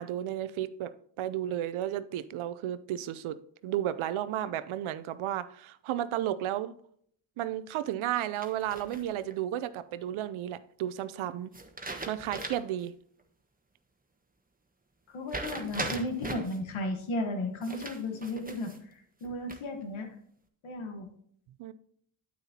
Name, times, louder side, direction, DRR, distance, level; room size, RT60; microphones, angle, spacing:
voice 1, 0.0-6.7 7.4-11.5 12.1-12.9 21.6-21.7, right 12 dB, 80° right, 0.6 m, -33 dB
sound 1, 8.4-9.3 11.5-12.8 13.2-13.3 15.3-16.6 17.6-18.8 19.2-19.8, right 2 dB, 20° right, 1.4 m, -39 dB
voice 2, 15.1-20.1 20.6-21.1, left 1 dB, 80° left, 1.5 m, -34 dB
9.0 x 8.8 x 2.8 m
supercardioid pair, 40°, 48 cm